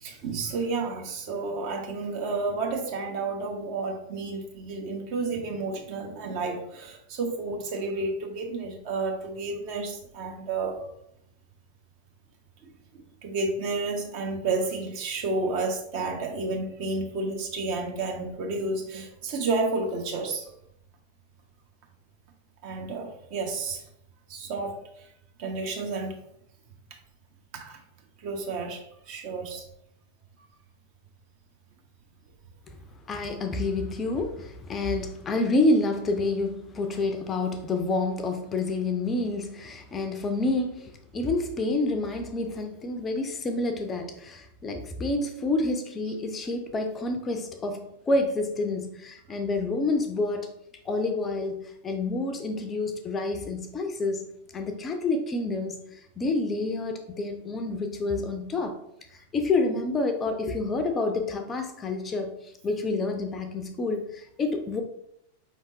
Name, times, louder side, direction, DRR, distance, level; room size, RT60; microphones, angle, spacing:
voice 1, 0.0-10.9 12.6-20.5 22.6-23.8 24.3-25.1 25.4-26.2 27.5-27.8 28.2-29.6, right 3 dB, 45° right, 2 dB, 0.9 m, -31 dB
voice 2, 33.1-50.5 50.9-54.3 54.5-58.8 59.1-62.3 62.6-64.8, left 2 dB, 20° left, 6 dB, 0.5 m, -28 dB
5.1 x 3.5 x 2.7 m, 0.76 s
figure-of-eight pair, 90°, 0 cm